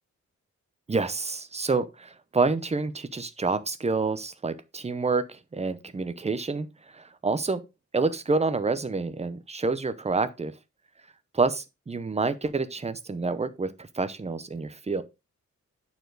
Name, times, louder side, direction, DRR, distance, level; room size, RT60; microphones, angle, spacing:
voice 1, 0.9-6.7 6.9-7.6 7.9-10.5 11.3-15.0, right 3 dB, 20° right, 0.7 m, -28 dB
9.3 x 4.4 x 3.9 m
wide cardioid pair, 160°, 29 cm